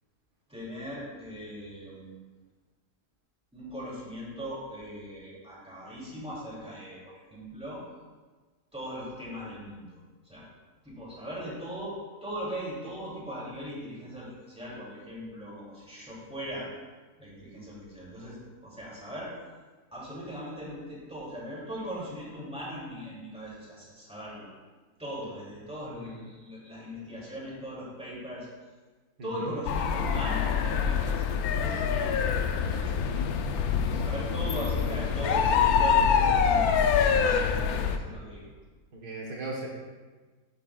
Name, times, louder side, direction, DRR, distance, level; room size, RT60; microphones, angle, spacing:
voice 1, 0.5-2.1 3.5-7.8 8.7-10.0 10.3-10.5 10.8-12.0 12.2-16.6 17.2-19.3 19.9-24.5 25.0-28.5 29.2-31.2 31.6-33.1 33.6-37.1 37.9-38.5, equal, 5° right, -7 dB, 2.7 m, -39 dB
voice 2, 29.2-29.5 39.0-39.7, right 2 dB, 75° right, -3 dB, 1.9 m, -37 dB
sound 1, 29.7-38.0, left 7 dB, 75° left, 1.0 m, -25 dB
11.0 x 7.6 x 2.4 m, 1.4 s
omnidirectional pair, 1.7 m